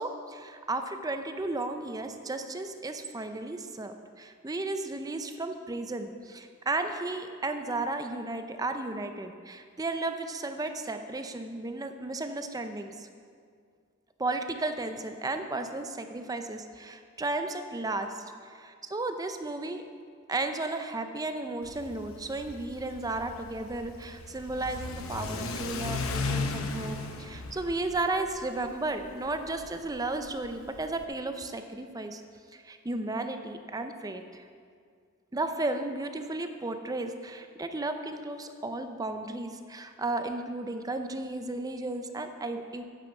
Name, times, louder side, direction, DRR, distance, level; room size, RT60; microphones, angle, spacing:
voice 1, 0.0-13.1 14.2-19.8 20.3-32.2 32.5-34.4 35.3-42.8, right 2 dB, 20° right, 7 dB, 0.5 m, -34 dB
Car / Accelerating revving vroom, 21.6-31.0, left 3 dB, 80° left, 0.8 m, -37 dB
9.1 x 8.8 x 5.3 m, 2.1 s
head